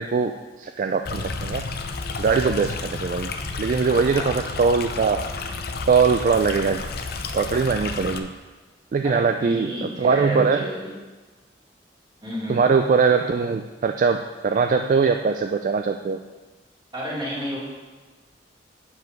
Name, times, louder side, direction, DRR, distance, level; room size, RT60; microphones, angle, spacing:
voice 1, 0.0-1.6 2.2-3.3 3.6-5.2 5.9-6.8 7.3-8.3 8.9-10.7 12.5-16.2, right 5 dB, 45° right, 6 dB, 0.3 m, -21 dB
Stream, 1.1-8.2, left 4 dB, 60° left, 0.6 m, -31 dB
voice 2, 9.0-10.9 12.2-12.6 16.9-17.6, equal, 25° right, -5 dB, 2.1 m, -31 dB
8.2 x 5.2 x 5.2 m, 1.3 s
head